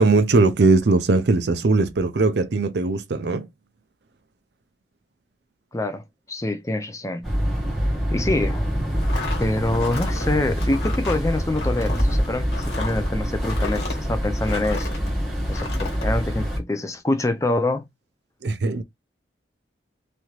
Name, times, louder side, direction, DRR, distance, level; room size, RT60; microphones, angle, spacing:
voice 1, 0.0-3.5 18.4-18.8, right 3 dB, 65° right, 0.5 m, -19 dB
voice 2, 5.7-7.3 8.1-8.7 9.4-14.9 15.5-17.9, left 2 dB, 15° left, 0.4 m, -25 dB
sound 1, 7.2-16.6, equal, ahead, 1.2 m, -25 dB
sound 2, 8.9-15.1 15.5-16.1, left 4 dB, 60° left, 1.4 m, -35 dB
3.2 x 2.8 x 2.4 m
head